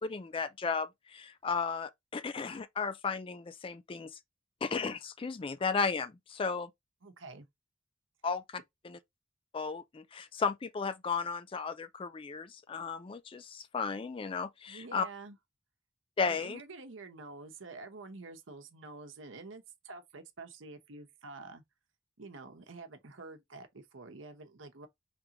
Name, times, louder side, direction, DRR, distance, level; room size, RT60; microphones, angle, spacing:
voice 1, 0.0-4.2 4.6-6.7 8.2-8.6 8.8-9.0 9.5-15.1 16.2-16.6, left 5 dB, 25° left, 0.3 m, -34 dB
voice 2, 7.0-7.5 14.7-15.4 16.2-21.6 22.2-24.9, right 3 dB, 80° right, 0.9 m, -48 dB
5.0 x 3.4 x 2.9 m
head